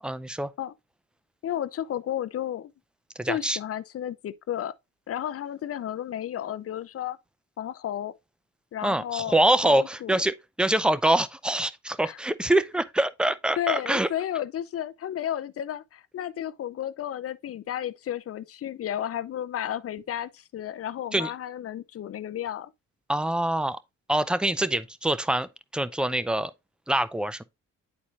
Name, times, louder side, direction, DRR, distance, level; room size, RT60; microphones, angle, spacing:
voice 1, 0.0-0.5 3.2-3.6 8.8-14.1 21.1-21.3 23.1-23.8 24.1-26.5 26.9-27.4, right 1 dB, 5° right, 0.5 m, -25 dB
voice 2, 1.4-2.7 3.3-4.7 5.1-7.2 7.6-8.1 8.7-9.4 9.6-10.2 12.0-12.2 13.6-22.7, left 10 dB, 50° left, 0.6 m, -32 dB
9.8 x 4.2 x 2.5 m
cardioid pair, 90°, 30 cm